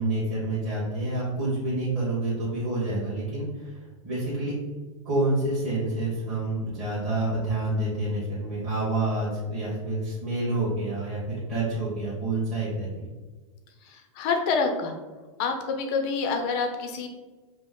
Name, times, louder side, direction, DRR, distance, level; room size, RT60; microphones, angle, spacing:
voice 1, 0.0-4.5 5.0-12.9, right 2 dB, 30° right, -9 dB, 1.3 m, -28 dB
voice 2, 13.8-14.9 15.4-17.1, left 4 dB, 35° left, 4 dB, 0.5 m, -27 dB
5.1 x 2.0 x 3.6 m, 1.3 s
supercardioid pair, 160°, 18 cm